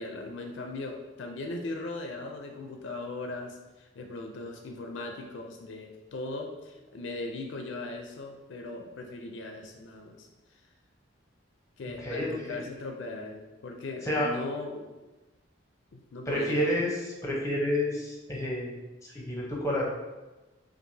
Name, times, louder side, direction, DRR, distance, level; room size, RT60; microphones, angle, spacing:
voice 1, 0.0-10.3 11.8-14.9 15.9-16.6, left 2 dB, 70° left, 3 dB, 0.4 m, -38 dB
voice 2, 12.0-12.6 14.0-14.3 16.3-18.7 19.0-19.8, left 1 dB, 15° left, -3 dB, 0.7 m, -29 dB
4.5 x 2.5 x 2.7 m, 1.1 s
head